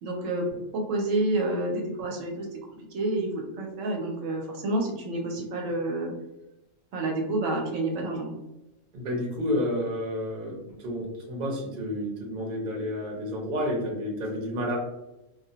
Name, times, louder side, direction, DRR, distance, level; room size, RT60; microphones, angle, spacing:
voice 1, 0.0-2.5 2.9-6.1 6.9-8.3, right 2 dB, 75° right, 0 dB, 0.9 m, -29 dB
voice 2, 8.9-14.8, left 1 dB, 45° right, -1 dB, 0.7 m, -30 dB
2.3 x 2.1 x 2.7 m, 0.95 s
omnidirectional pair, 1.3 m